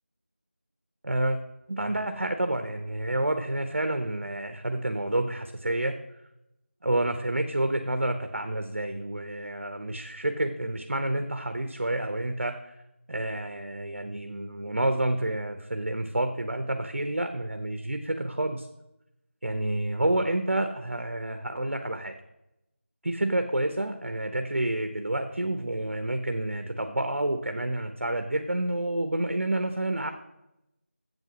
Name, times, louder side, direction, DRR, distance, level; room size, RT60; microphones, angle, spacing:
voice 1, 1.0-1.4 1.7-6.0 6.8-12.7 13.1-18.7 19.4-22.1 23.0-30.1, right 1 dB, 60° right, 7 dB, 0.9 m, -29 dB
8.1 x 7.8 x 6.1 m, 0.89 s
figure-of-eight pair, 175°, 7 cm